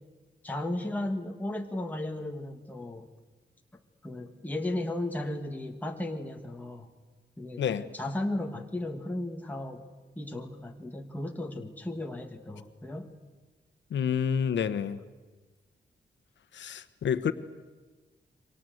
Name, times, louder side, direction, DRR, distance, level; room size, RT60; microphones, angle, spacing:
voice 1, 0.4-3.1 4.0-6.9 7.4-7.6 7.9-9.8 10.1-13.1, left 1 dB, 10° left, 2 dB, 1.7 m, -35 dB
voice 2, 13.9-15.0 16.5-17.3, left 8 dB, 85° left, 12 dB, 1.2 m, -28 dB
28.5 x 24.0 x 7.9 m, 1.3 s
wide cardioid pair, 145°, 18 cm